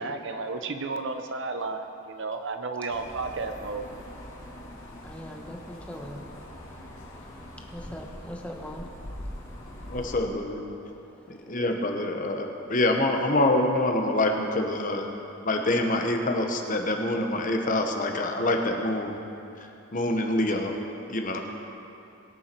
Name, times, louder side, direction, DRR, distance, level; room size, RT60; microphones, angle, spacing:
voice 1, 0.0-3.9, right 3 dB, 55° right, 6 dB, 0.8 m, -32 dB
sound 1, 2.9-10.2, left 1 dB, 65° left, 2.5 m, -43 dB
voice 2, 4.8-10.1 10.7-11.6, equal, 5° left, 1 dB, 1.0 m, -44 dB
voice 3, 9.9-10.6 11.3-15.1 15.4-19.1 19.9-20.7 21.1-21.4, left 1 dB, 40° left, 3 dB, 1.1 m, -26 dB
21.5 x 7.2 x 4.6 m, 2.8 s
head